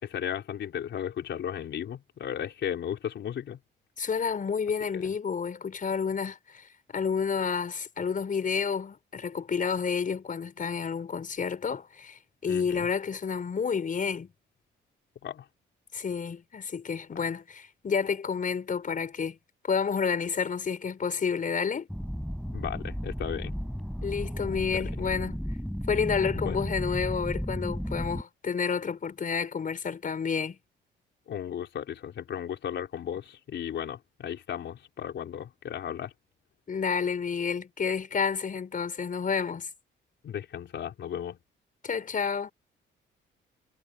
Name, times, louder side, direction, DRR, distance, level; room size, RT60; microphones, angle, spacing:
voice 1, 0.0-3.6 4.9-5.1 12.5-12.9 15.2-15.5 17.1-17.2 22.5-23.5 26.4-26.6 31.3-36.1 40.2-41.4, left 9 dB, 65° left, 4.5 m, -35 dB
voice 2, 4.0-14.3 15.9-19.4 19.7-21.9 24.0-25.4 25.9-30.6 36.7-39.7 41.8-42.5, left 6 dB, 45° left, 5.5 m, -30 dB
sound 1, 21.9-28.2, equal, ahead, 5.5 m, -34 dB
cardioid pair, 90°, 20 cm